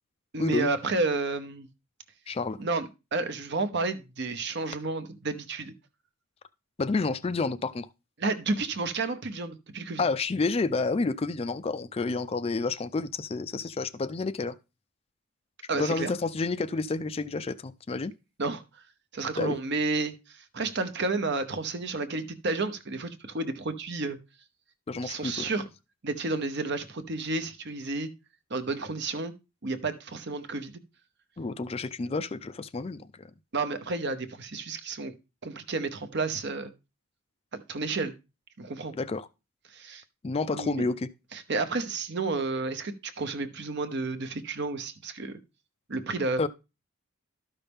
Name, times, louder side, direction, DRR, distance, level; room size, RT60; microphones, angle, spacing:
voice 1, 0.3-1.7 2.6-5.7 8.2-10.0 15.7-16.1 18.4-18.6 19.1-20.1 20.5-24.2 25.0-25.7 26.0-28.1 28.5-29.3 29.6-30.8 33.5-35.1 35.4-36.7 37.5-38.1 38.6-38.9 39.7-40.0 40.5-40.8 41.3-45.4 45.9-46.5, right 3 dB, 55° right, 0.9 m, -31 dB
voice 2, 2.3-2.6 6.8-7.9 10.0-14.6 15.7-18.1 19.4-19.6 24.9-25.4 31.4-33.1 38.9-39.3 40.2-41.1 46.4-46.5, left 3 dB, 25° left, 0.4 m, -29 dB
12.5 x 5.6 x 3.5 m
head